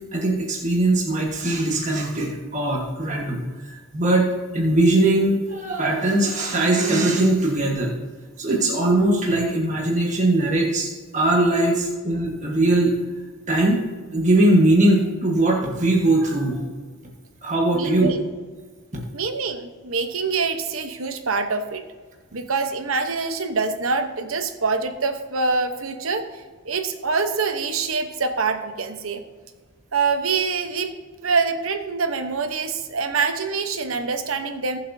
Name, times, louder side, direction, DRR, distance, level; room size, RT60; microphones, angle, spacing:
voice 1, 0.0-8.0 8.4-13.0 13.5-13.8 14.1-16.7 17.4-18.1 18.9-19.0, right 1 dB, 35° right, -2 dB, 1.5 m, -20 dB
voice 2, 17.7-18.3 19.1-21.8 22.3-29.2 29.9-30.9 31.2-34.8, right 4 dB, 70° right, 8 dB, 1.0 m, -25 dB
19.5 x 7.6 x 2.7 m, 1.4 s
head